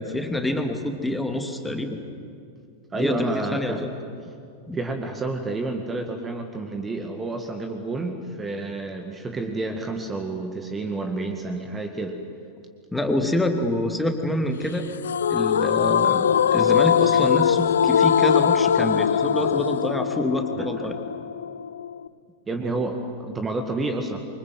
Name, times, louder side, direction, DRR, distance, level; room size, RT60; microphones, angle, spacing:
voice 1, 0.0-2.0 2.9-3.9 4.7-4.8 12.9-14.9 15.3-21.0, left 1 dB, 5° left, 4 dB, 2.6 m, -26 dB
voice 2, 2.9-3.8 4.7-12.2 22.5-24.2, right 2 dB, 15° right, 5 dB, 2.1 m, -29 dB
sound 1, 15.0-22.1, left 8 dB, 65° left, 0.6 m, -21 dB
27.5 x 24.5 x 7.9 m, 2.4 s
figure-of-eight pair, 90°, 0 cm